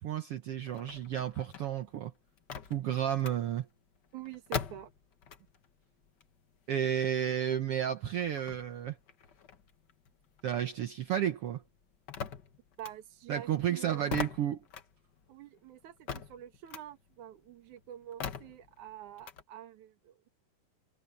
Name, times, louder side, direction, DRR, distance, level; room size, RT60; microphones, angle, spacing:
voice 1, 0.0-2.1 2.7-3.7 6.7-9.0 10.4-11.6 13.3-14.6, right 10 dB, 85° right, 1.3 m, -32 dB
sound 1, 0.6-5.7 6.0-10.9 11.2-19.4, left 7 dB, 70° left, 1.0 m, -43 dB
voice 2, 4.1-4.9 12.8-14.2 15.3-20.3, right 11 dB, 65° right, 3.0 m, -47 dB
omnidirectional pair, 3.9 m